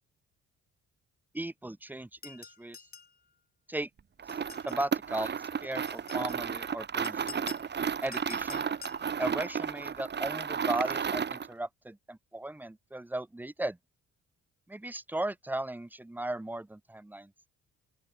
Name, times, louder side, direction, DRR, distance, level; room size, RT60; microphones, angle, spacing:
voice 1, 1.3-2.8 3.7-3.9 4.6-7.5 8.0-8.7 9.2-13.8 14.7-17.3, right 1 dB, 5° right, 0.7 m, -36 dB
sound 1, 2.2-3.2 4.3-4.8 5.9-6.4 7.0-7.7 8.1-9.1, left 5 dB, 30° left, 2.7 m, -47 dB
sound 2, 4.2-11.5, right 7 dB, 35° right, 1.0 m, -33 dB
open air
cardioid pair, 90°, 30 cm